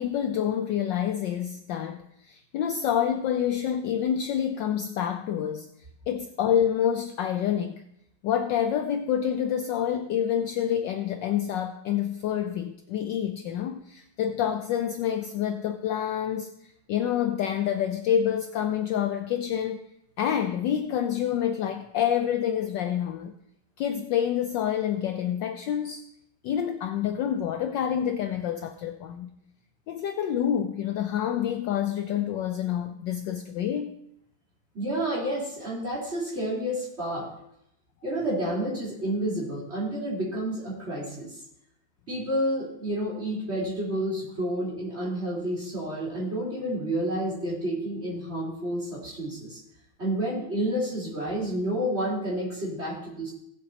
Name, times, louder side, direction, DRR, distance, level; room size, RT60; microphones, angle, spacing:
voice 1, 0.0-5.7 6.1-7.8 8.2-19.8 20.2-23.3 23.8-26.0 26.4-29.3 29.9-34.0, left 9 dB, 75° left, 7 dB, 1.1 m, -27 dB
voice 2, 34.7-37.3 38.0-41.4 42.1-49.6 50.0-53.3, right 1 dB, 30° right, -6 dB, 4.1 m, -30 dB
18.0 x 7.6 x 2.8 m, 0.77 s
omnidirectional pair, 2.4 m